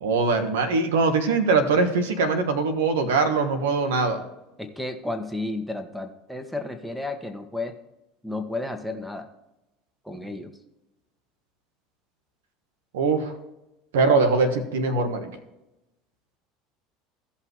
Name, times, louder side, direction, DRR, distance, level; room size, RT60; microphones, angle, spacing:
voice 1, 0.0-4.2 12.9-13.3 13.9-15.3, right 4 dB, 85° right, 8 dB, 1.3 m, -22 dB
voice 2, 4.6-7.7 8.2-9.3 10.0-10.5, left 2 dB, ahead, 7 dB, 1.4 m, -32 dB
16.5 x 5.7 x 3.2 m, 0.94 s
hypercardioid pair, 85°, 0 cm